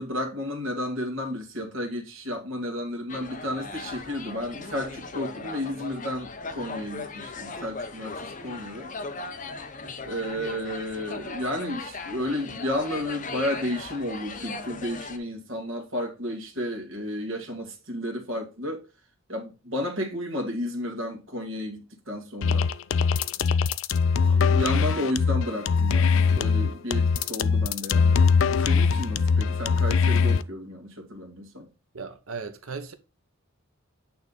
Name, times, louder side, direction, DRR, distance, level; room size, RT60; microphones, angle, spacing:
voice 1, 0.0-8.9 10.0-18.9 19.3-22.7 24.2-28.2 28.6-31.7, left 1 dB, 65° right, 2.0 m, -32 dB
sound 1, 3.1-15.2, left 3 dB, 35° left, 0.7 m, -38 dB
sound 2, 22.4-30.4, left 5 dB, 65° left, 0.4 m, -22 dB
voice 2, 24.2-25.1 31.9-32.9, right 4 dB, 80° right, 1.0 m, -38 dB
8.7 x 3.5 x 4.0 m
head